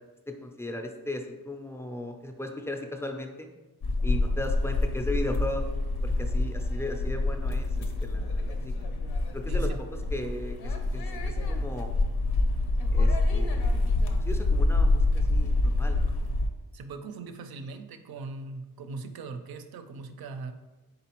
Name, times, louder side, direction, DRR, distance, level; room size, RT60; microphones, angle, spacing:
voice 1, 0.3-3.5 4.0-5.7 6.0-8.7 9.3-9.7 10.1-11.9 12.9-16.1, left 1 dB, 5° left, 4 dB, 0.3 m, -37 dB
sound 1, 3.8-16.5, left 2 dB, 85° left, 0.6 m, -26 dB
voice 2, 9.5-9.8 16.7-20.5, right 3 dB, 75° right, 8 dB, 0.5 m, -40 dB
4.1 x 3.7 x 2.9 m, 1.1 s
wide cardioid pair, 125°, 37 cm